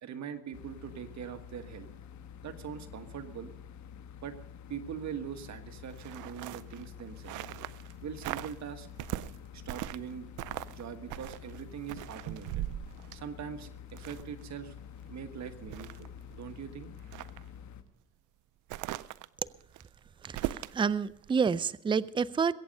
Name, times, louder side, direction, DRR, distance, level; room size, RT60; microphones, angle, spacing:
voice 1, 0.0-1.9 2.4-3.5 4.2-4.4 4.7-7.4 8.0-8.9 9.5-10.3 10.7-12.6 13.1-14.7 15.1-16.9, right 8 dB, 65° right, 8 dB, 1.5 m, -42 dB
sound 1, 0.5-17.8, left 8 dB, 70° left, 1.2 m, -48 dB
sound 2, 5.9-7.9 8.2-8.6 9.0-10.1 10.4-10.8 11.1-14.4 14.9-15.0 15.4-16.5 17.0-17.4 18.7-20.8 21.2-21.4, right 15 dB, 85° right, 0.5 m, -39 dB
voice 2, 20.2-22.5, right 6 dB, 15° right, 18 dB, 0.4 m, -29 dB
22.0 x 8.7 x 5.3 m, 0.83 s
cardioid pair, 90°, 30 cm